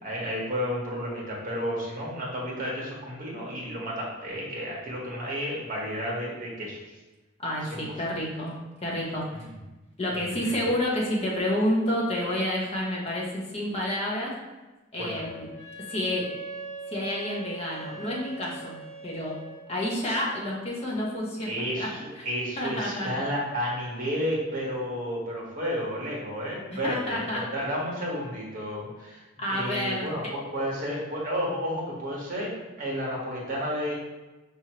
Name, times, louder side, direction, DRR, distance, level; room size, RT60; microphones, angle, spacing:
voice 1, 0.0-7.0 7.7-8.0 9.3-9.5 10.1-10.5 15.0-15.3 21.4-33.9, equal, 40° right, -3 dB, 1.3 m, -32 dB
voice 2, 7.4-8.6 8.8-9.2 10.0-14.3 14.9-15.5 15.9-16.3 16.9-19.4 19.7-21.9 22.6-23.3 26.8-27.4 29.4-30.1, left 1 dB, 30° left, -4 dB, 1.1 m, -29 dB
Wind instrument woodwind instrument, 15.0-19.6, right 3 dB, 5° left, 1.2 m, -41 dB
5.4 x 3.1 x 3.0 m, 1.1 s
head